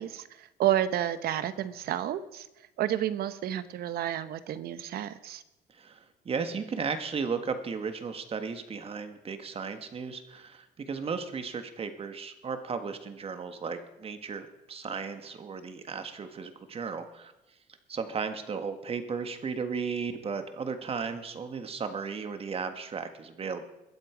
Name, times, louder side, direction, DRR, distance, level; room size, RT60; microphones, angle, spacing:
voice 1, 0.0-2.5 2.8-5.4, right 11 dB, 65° right, 13 dB, 0.9 m, -30 dB
voice 2, 5.7-17.3 17.9-23.6, right 5 dB, 35° right, 8 dB, 1.6 m, -35 dB
21.5 x 7.8 x 5.0 m, 0.92 s
cardioid pair, 110°, 17 cm